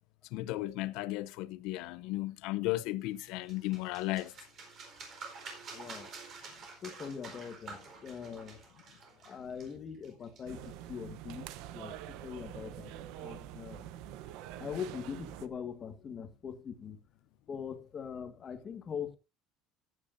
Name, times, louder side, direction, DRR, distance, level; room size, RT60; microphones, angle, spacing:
voice 1, 0.3-4.3, left 17 dB, 65° left, 0.6 m, -35 dB
sound 1, 3.2-10.7, right 4 dB, 35° right, 4.5 m, -49 dB
voice 2, 5.7-6.1 6.8-8.6 9.2-11.5 11.7-13.9 14.6-17.0 17.5-19.2, left 7 dB, 25° left, 1.7 m, -42 dB
sound 2, 10.5-15.5, right 12 dB, 65° right, 0.9 m, -45 dB
14.5 x 9.9 x 2.6 m
cardioid pair, 155°, 0 cm